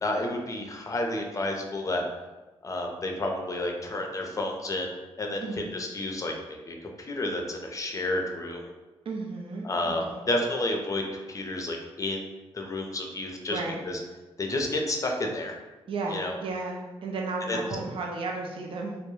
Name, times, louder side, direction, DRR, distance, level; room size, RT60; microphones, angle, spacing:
voice 1, 0.0-2.0 2.6-4.9 5.2-8.6 9.6-12.3 12.5-13.6 13.8-14.0 14.4-15.5 16.1-16.4 17.5-17.6, left 1 dB, 30° left, 2 dB, 0.5 m, -30 dB
voice 2, 9.1-9.7 10.1-10.2 13.5-13.8 15.9-19.0, right 3 dB, 50° right, 0 dB, 0.5 m, -33 dB
2.2 x 2.0 x 3.0 m, 1.2 s
supercardioid pair, 60°, 11 cm